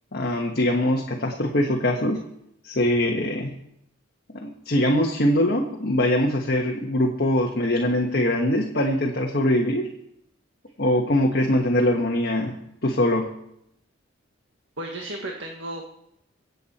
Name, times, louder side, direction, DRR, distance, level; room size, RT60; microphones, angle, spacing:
voice 1, 0.1-2.2 2.6-3.5 4.3-9.9 10.8-12.5 12.8-13.3, left 1 dB, 50° left, 0 dB, 1.4 m, -22 dB
voice 2, 14.8-15.9, right 1 dB, 70° right, 0 dB, 1.5 m, -33 dB
24.0 x 8.2 x 4.3 m, 0.77 s
head